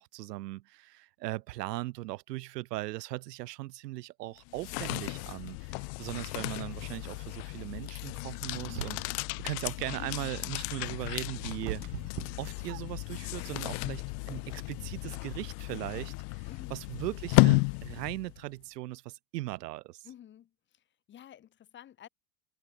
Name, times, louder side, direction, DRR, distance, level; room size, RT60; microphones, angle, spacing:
voice 1, 0.0-11.8 12.4-20.1, right 18 dB, 75° right, 2.7 m, -39 dB
sound 1, 4.4-18.4, left 37 dB, 45° left, 1.1 m, -33 dB
sound 2, 8.6-9.3 10.8-13.1, right 26 dB, 55° right, 2.3 m, -41 dB
voice 2, 16.5-16.9 20.0-22.1, left 11 dB, 25° left, 4.1 m, -51 dB
supercardioid pair, 170°, 48 cm